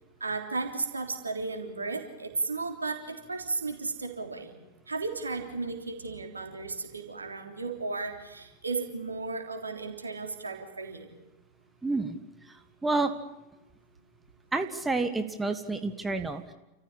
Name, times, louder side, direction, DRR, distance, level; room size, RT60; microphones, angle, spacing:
voice 1, 0.2-4.5 4.9-11.1, right 3 dB, 80° right, 4 dB, 3.4 m, -34 dB
voice 2, 11.8-12.2 12.5-13.1 14.5-16.5, right 3 dB, 10° right, 8 dB, 1.5 m, -29 dB
29.0 x 14.5 x 10.0 m, 1.0 s
figure-of-eight pair, 90°, 0 cm